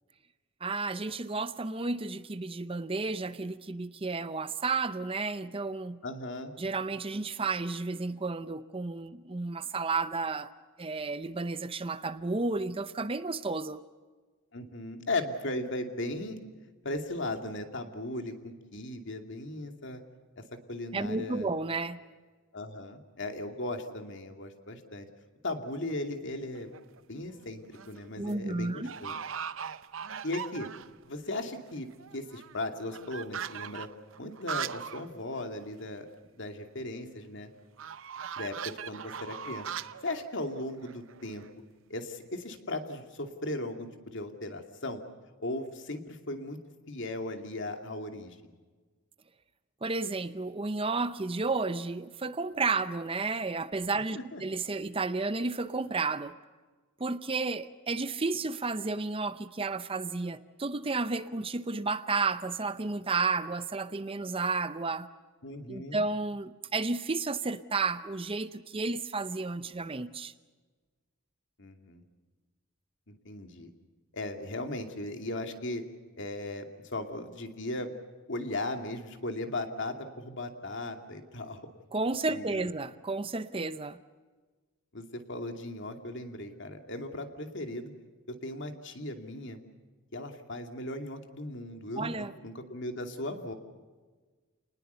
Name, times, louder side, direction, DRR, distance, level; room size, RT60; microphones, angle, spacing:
voice 1, 0.6-6.0 6.6-10.5 10.8-13.8 20.9-22.0 28.2-28.9 49.8-56.4 57.0-65.1 65.7-70.3 81.9-84.0 92.0-92.3, right 3 dB, 25° right, 0.7 m, -32 dB
voice 2, 6.0-6.5 14.5-16.4 16.8-20.0 20.4-20.5 20.7-21.5 22.5-25.1 25.4-26.7 27.1-29.1 30.2-30.7 31.1-31.9 32.1-33.9 34.2-36.1 36.3-37.5 38.4-39.7 40.0-41.4 41.9-45.0 45.4-46.6 46.9-48.5 54.2-54.4 65.4-66.0 71.6-72.0 73.1-73.7 74.1-75.8 76.2-77.9 78.3-81.6 82.3-82.7 84.9-87.9 88.3-89.6 90.1-93.5, left 2 dB, 60° left, 2.6 m, -37 dB
sound 1, 26.6-27.0 27.5-28.0 28.2-28.3 28.8-31.0 31.4-31.5 31.7-35.1 35.4-35.5 35.8-35.9 37.8-41.5, right 8 dB, 65° right, 0.7 m, -40 dB
29.0 x 20.0 x 6.9 m
head